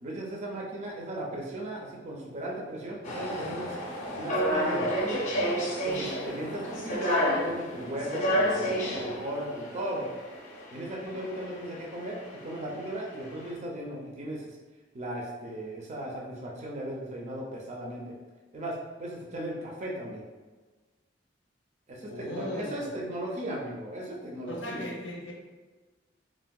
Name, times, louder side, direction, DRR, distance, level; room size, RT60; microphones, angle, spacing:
voice 1, 0.0-3.8 4.2-4.9 5.8-10.1 10.7-14.6 14.9-18.1 18.5-20.2 21.9-24.8, right 1 dB, 40° right, -2 dB, 0.4 m, -37 dB
sound 1, 3.0-13.5, equal, 40° left, 0.6 m, -30 dB
voice 2, 22.0-22.9 24.5-25.3, left 1 dB, 85° left, 0 dB, 0.6 m, -37 dB
3.5 x 2.1 x 2.2 m, 1.3 s
head